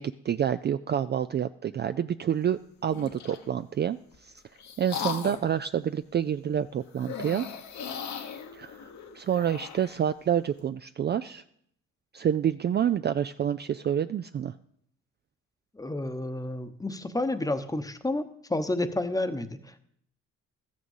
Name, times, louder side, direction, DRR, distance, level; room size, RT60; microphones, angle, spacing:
voice 1, 0.0-4.3 4.8-7.5 8.5-11.4 12.1-14.5, right 9 dB, 35° right, 11 dB, 0.4 m, -28 dB
sound 1, 2.9-3.5 4.1-5.6 6.9-10.0, left 7 dB, 65° left, 1.4 m, -38 dB
voice 2, 15.7-19.8, left 2 dB, 10° left, 9 dB, 0.9 m, -30 dB
13.5 x 6.3 x 7.2 m, 0.70 s
cardioid pair, 90°, 30 cm